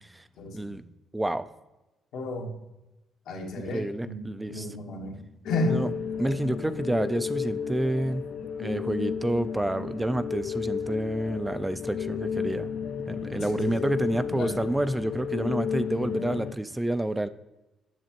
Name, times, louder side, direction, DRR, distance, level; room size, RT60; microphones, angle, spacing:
voice 1, 0.4-0.8 2.1-2.5 3.3-5.8 13.3-14.1 14.3-14.6, left 2 dB, 85° left, 1 dB, 1.2 m, -33 dB
voice 2, 1.1-1.5 3.7-4.7 5.7-5.9 6.2-8.2 8.6-12.7 13.1-17.3, right 1 dB, 10° right, 12 dB, 0.3 m, -29 dB
sound 1, 5.5-16.5, left 7 dB, 70° left, 0.4 m, -33 dB
7.8 x 6.7 x 2.9 m, 1.0 s
cardioid pair, 90°, 0 cm